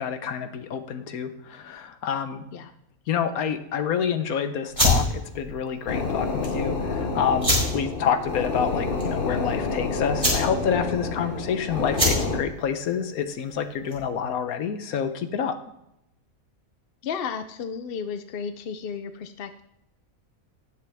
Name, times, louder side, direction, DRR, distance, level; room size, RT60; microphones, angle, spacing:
voice 1, 0.0-2.4 3.1-15.6, left 7 dB, 90° left, 9 dB, 1.3 m, -28 dB
sound 1, 4.7-14.2, left 1 dB, 20° right, 3.9 m, -28 dB
sound 2, 5.9-12.4, left 4 dB, 40° left, 1.2 m, -28 dB
voice 2, 17.0-19.6, left 6 dB, 60° left, 9 dB, 0.6 m, -33 dB
18.0 x 6.7 x 3.5 m, 0.81 s
omnidirectional pair, 1.5 m